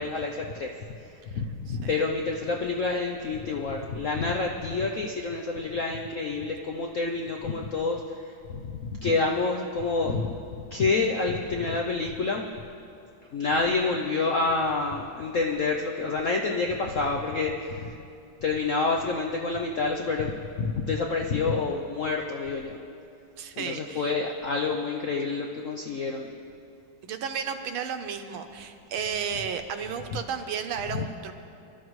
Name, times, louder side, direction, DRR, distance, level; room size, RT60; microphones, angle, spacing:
voice 1, 0.0-10.3 10.7-12.5 13.3-18.0 18.4-22.8 23.6-26.3 30.9-31.1, left 3 dB, 70° left, 1 dB, 0.7 m, -28 dB
voice 2, 23.4-24.1 27.0-31.3, right 7 dB, 80° right, 7 dB, 1.7 m, -33 dB
25.0 x 12.0 x 3.2 m, 2.5 s
omnidirectional pair, 2.2 m